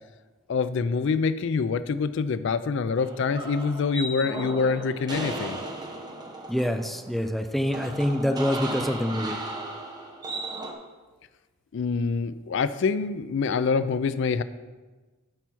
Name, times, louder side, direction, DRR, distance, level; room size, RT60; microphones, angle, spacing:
voice 1, 0.5-5.6 11.7-14.4, left 5 dB, 60° left, 14 dB, 0.4 m, -26 dB
sound 1, 3.0-10.7, right 2 dB, 20° right, 1.0 m, -36 dB
voice 2, 6.5-9.4, equal, ahead, 6 dB, 0.4 m, -26 dB
8.9 x 5.6 x 6.1 m, 1.3 s
head